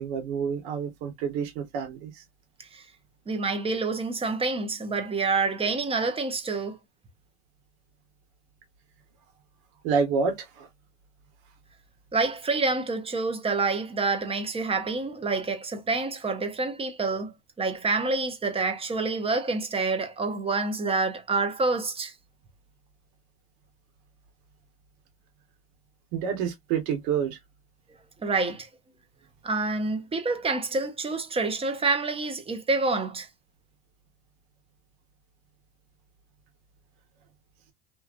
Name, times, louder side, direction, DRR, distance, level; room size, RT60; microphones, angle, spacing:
voice 1, 0.0-2.2 9.8-10.7 26.1-27.4, right 6 dB, 65° right, 1.2 m, -28 dB
voice 2, 3.3-6.8 12.1-22.1 28.2-28.7 29.4-33.3, right 3 dB, 15° right, 0.7 m, -27 dB
2.8 x 2.4 x 2.4 m
supercardioid pair, 105°, 37 cm